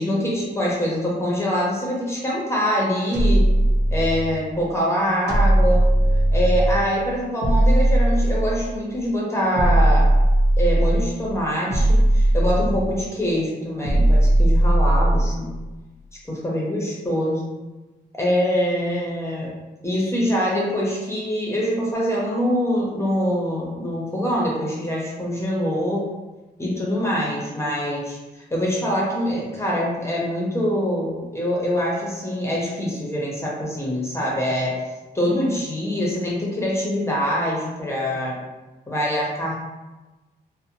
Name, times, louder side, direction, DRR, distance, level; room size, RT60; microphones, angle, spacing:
voice 1, 0.0-3.4 3.9-5.8 6.3-10.1 10.6-15.5 16.3-17.4 18.1-19.5 19.8-26.1 26.6-34.8 35.1-38.4 38.9-39.6, equal, 15° left, -4 dB, 0.6 m, -24 dB
sound 1, 3.1-4.5 5.3-6.9 7.4-8.8 9.6-11.2 11.7-13.1 13.8-15.5, right 1 dB, 65° right, 0.7 m, -18 dB
2.5 x 2.0 x 2.8 m, 1.1 s
wide cardioid pair, 120°, 18 cm